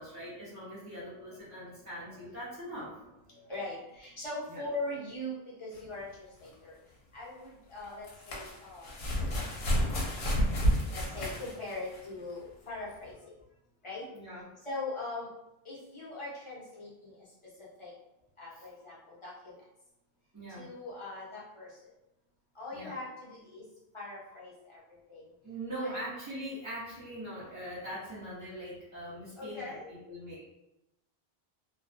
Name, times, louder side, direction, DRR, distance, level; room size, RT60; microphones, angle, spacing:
voice 1, 0.0-3.1 4.5-4.6 14.1-14.6 18.5-18.7 20.3-20.7 22.7-23.0 24.3-24.4 25.4-30.5, right 1 dB, 25° right, -10 dB, 0.5 m, -42 dB
voice 2, 3.3-6.8 7.1-8.9 9.2-9.4 10.8-13.2 13.8-14.1 14.6-15.3 15.6-17.1 17.6-17.9 18.4-19.6 20.6-21.7 22.5-23.6 23.9-24.8 25.1-25.2 25.7-26.1 29.4-29.9, left 2 dB, 35° left, -7 dB, 0.7 m, -41 dB
sound 1, 5.8-5.9 7.8-12.1 13.1-13.2, equal, 80° left, 0.9 m, -30 dB
2.3 x 2.2 x 2.4 m, 0.90 s
omnidirectional pair, 1.0 m